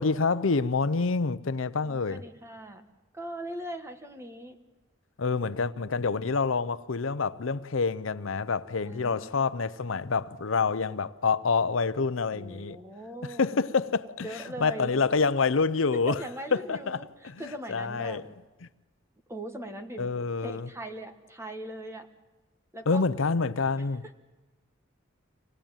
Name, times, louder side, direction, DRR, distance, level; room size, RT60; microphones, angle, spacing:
voice 1, 0.0-2.2 5.2-12.8 13.2-14.3 14.6-16.2 16.5-18.2 20.0-20.7 22.9-24.0, left 4 dB, 75° left, 0.7 m, -27 dB
voice 2, 1.8-2.8 3.1-4.5 5.5-6.1 8.9-10.2 12.3-13.6 14.2-15.0 16.1-18.2 19.3-20.1 20.4-22.1 22.7-23.0 23.8-23.9, right 1 dB, 15° right, 1.4 m, -40 dB
25.0 x 19.0 x 9.0 m
head